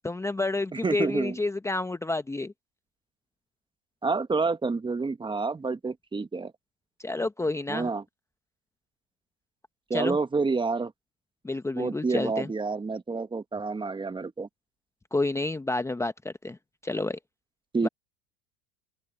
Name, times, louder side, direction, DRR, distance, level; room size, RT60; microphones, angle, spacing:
voice 1, 0.0-2.5 7.0-7.9 9.9-10.2 11.4-12.5 15.1-16.6 16.8-17.2 17.8-17.9, left 2 dB, 10° left, 1.1 m, -29 dB
voice 2, 0.7-1.4 4.0-6.5 7.7-8.0 9.9-10.9 11.8-14.5 17.7-17.9, right 4 dB, 15° right, 1.4 m, -28 dB
open air
hypercardioid pair, 90°, 32 cm